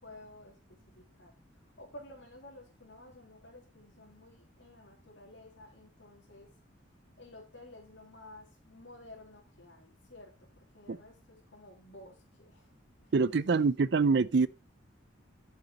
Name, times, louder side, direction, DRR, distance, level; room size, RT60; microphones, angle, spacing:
voice 1, 0.0-6.5 7.2-12.7 13.0-13.1, left 1 dB, 70° left, 3.4 m, -53 dB
voice 2, 13.1-14.5, right 4 dB, 60° right, 0.5 m, -25 dB
12.5 x 6.8 x 4.0 m
head